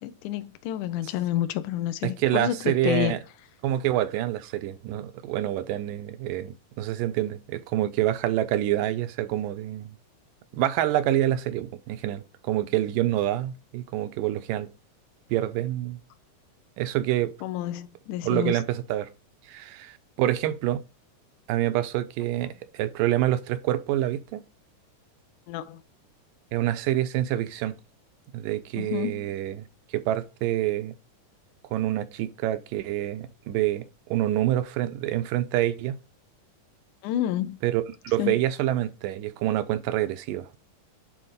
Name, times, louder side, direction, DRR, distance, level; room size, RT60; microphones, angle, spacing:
voice 1, 0.0-3.2 17.4-18.6 25.5-25.8 28.8-29.3 37.0-37.6 38.2-38.3, left 12 dB, 80° left, 2.1 m, -29 dB
voice 2, 2.0-3.2 3.6-10.0 10.5-14.7 15.3-16.0 16.8-17.3 18.2-19.1 19.5-20.8 21.5-24.4 26.5-27.7 28.3-29.7 29.9-30.9 31.7-33.9 34.1-36.0 37.6-40.5, right 13 dB, 90° right, 2.3 m, -27 dB
8.9 x 3.9 x 5.2 m
omnidirectional pair, 3.8 m